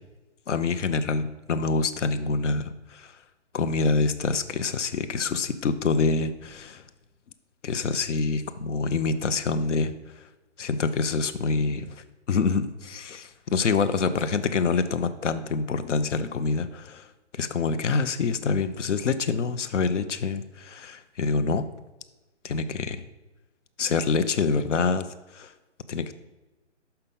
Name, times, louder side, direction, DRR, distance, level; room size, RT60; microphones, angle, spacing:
voice 1, 0.5-3.1 3.5-6.8 7.6-9.9 10.6-12.0 12.3-17.1 17.3-21.6 22.4-23.0 23.8-25.1 25.3-25.5 25.9-26.1, left 4 dB, 80° left, 12 dB, 0.7 m, -26 dB
5.7 x 5.7 x 5.4 m, 1.1 s
hypercardioid pair, 160°, 36 cm